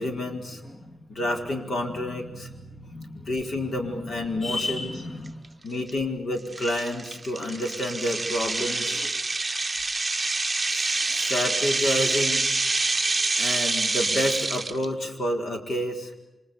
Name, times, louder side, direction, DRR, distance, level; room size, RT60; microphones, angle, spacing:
voice 1, 0.0-0.6 1.1-2.5 3.3-4.9 5.6-9.0 10.7-12.5 13.4-16.1, left 1 dB, 65° left, 3 dB, 4.6 m, -29 dB
voice 2, 0.6-1.2 2.1-3.4 3.8-5.5 8.5-9.4 11.1-11.3 12.6-13.6, left 2 dB, 40° left, 4 dB, 2.5 m, -38 dB
sound 1, 4.6-4.7 5.3-5.5 5.9-6.0 6.5-14.9, right 3 dB, 20° right, 0.9 m, -26 dB
29.5 x 25.5 x 7.1 m, 1.0 s
wide cardioid pair, 135°, 0 cm